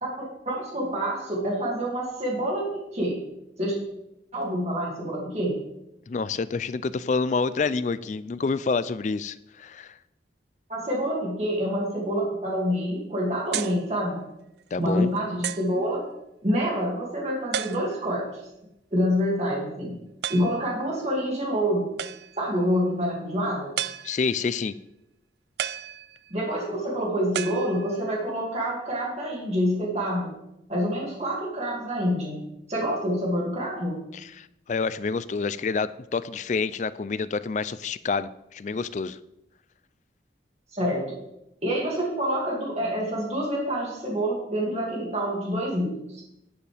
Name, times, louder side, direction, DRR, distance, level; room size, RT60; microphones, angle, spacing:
voice 1, 0.0-3.2 3.6-3.8 4.3-5.6 10.7-14.2 14.8-16.0 16.4-18.4 18.9-20.0 20.3-21.9 22.4-23.7 26.3-30.3 30.7-32.4 32.7-34.0 40.7-41.2 41.6-46.2, equal, 35° right, -3 dB, 2.3 m, -27 dB
voice 2, 6.1-10.0 14.7-15.1 24.0-24.7 34.1-39.2, left 4 dB, 40° left, 16 dB, 0.3 m, -28 dB
sound 1, 13.5-13.9 14.6-14.7 15.4-15.8 17.5-18.2 20.2-20.6 22.0-22.5 23.8-24.5 25.6-26.5 27.3-28.2, right 9 dB, 60° right, 0.4 m, -33 dB
11.5 x 9.3 x 3.4 m, 0.86 s
head